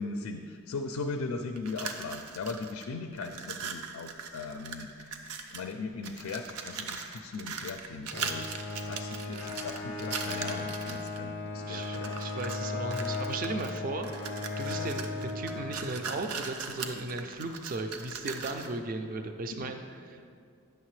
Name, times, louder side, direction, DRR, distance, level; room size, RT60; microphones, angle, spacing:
voice 1, 0.0-8.5 8.8-12.2 14.7-14.9 19.6-19.7, left 4 dB, 80° left, 6 dB, 0.4 m, -38 dB
sound 1, 1.6-2.8 3.1-5.7 6.0-11.2 11.7-12.6 12.9-18.8, right 5 dB, 90° right, 0.6 m, -40 dB
Bowed string instrument, 8.1-16.3, left 3 dB, 30° left, 0.5 m, -36 dB
voice 2, 11.5-14.1 14.6-20.3, right 3 dB, 40° right, 6 dB, 0.3 m, -36 dB
9.2 x 6.5 x 3.2 m, 2.3 s
head